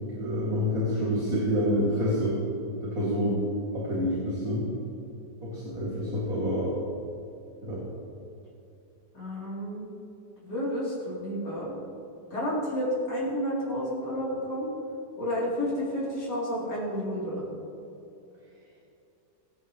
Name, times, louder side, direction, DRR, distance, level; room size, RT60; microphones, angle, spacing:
voice 1, 0.1-2.4 2.8-3.4 3.7-4.7 5.4-6.7 7.6-7.8, equal, 50° right, -7 dB, 3.0 m, -27 dB
voice 2, 9.1-9.9 10.4-11.7 12.3-14.7 15.2-17.4, equal, 70° left, -7 dB, 4.2 m, -31 dB
23.5 x 9.4 x 3.2 m, 2.8 s
omnidirectional pair, 1.9 m